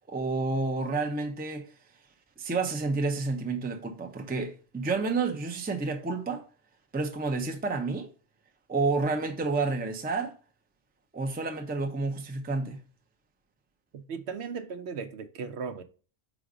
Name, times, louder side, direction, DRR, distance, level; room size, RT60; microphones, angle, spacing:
voice 1, 0.1-1.6 2.4-6.4 6.9-8.1 8.7-10.3 11.1-12.8, right 3 dB, 10° right, 0.4 m, -30 dB
voice 2, 13.9-15.8, right 5 dB, 65° right, 0.8 m, -37 dB
4.8 x 4.0 x 5.1 m
omnidirectional pair, 1.3 m